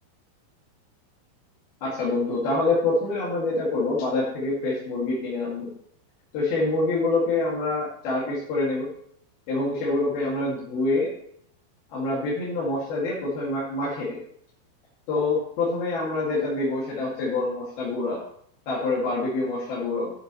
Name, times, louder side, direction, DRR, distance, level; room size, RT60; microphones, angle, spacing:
voice 1, 1.8-5.7 6.3-8.9 9.5-11.1 11.9-14.2 15.1-18.2 18.7-20.1, left 2 dB, 65° left, -7 dB, 4.1 m, -26 dB
11.0 x 9.3 x 3.1 m, 0.67 s
omnidirectional pair, 4.8 m